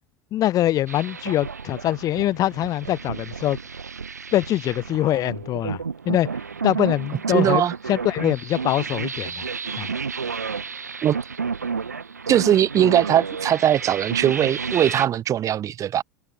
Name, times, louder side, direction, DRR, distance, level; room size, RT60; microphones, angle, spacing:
voice 1, 0.3-3.6 4.3-6.3 6.6-9.4 9.8-9.9, left 13 dB, 45° left, 3.5 m, -23 dB
sound 1, 0.9-15.1, right 5 dB, 90° right, 5.5 m, -31 dB
voice 2, 7.3-7.7 11.0-11.2 12.3-16.0, right 11 dB, 40° right, 5.6 m, -20 dB
hypercardioid pair, 80°, 9 cm